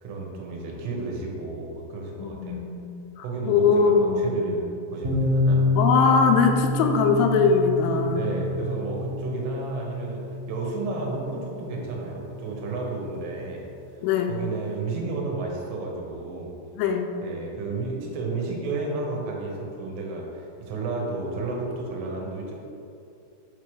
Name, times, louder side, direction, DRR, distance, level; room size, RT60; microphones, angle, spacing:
voice 1, 0.0-2.6 3.2-5.6 8.1-13.7 14.3-16.5 17.2-22.5, right 3 dB, 85° right, -2 dB, 3.7 m, -32 dB
voice 2, 2.2-4.6 5.7-8.3 14.0-14.3 16.8-17.1, left 5 dB, 85° left, 4 dB, 3.0 m, -21 dB
sound 1, 5.0-12.7, left 2 dB, 70° right, 1.7 m, -28 dB
9.1 x 3.1 x 6.3 m, 2.6 s
omnidirectional pair, 5.5 m